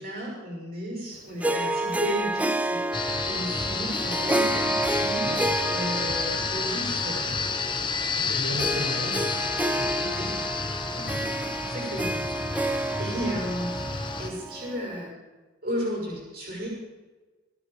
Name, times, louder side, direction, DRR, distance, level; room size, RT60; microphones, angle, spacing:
voice 1, 0.0-5.3 5.7-7.3 8.1-8.4 10.1-10.4 10.9-15.1 15.6-16.7, equal, 50° right, -3 dB, 6.4 m, -34 dB
Harp, 1.4-15.0, right 1 dB, 5° right, 0.6 m, -30 dB
sound 1, 2.9-14.3, left 4 dB, 25° left, 1.1 m, -30 dB
voice 2, 8.0-10.1, equal, 85° right, -4 dB, 6.5 m, -36 dB
23.5 x 9.5 x 4.9 m, 1.2 s
head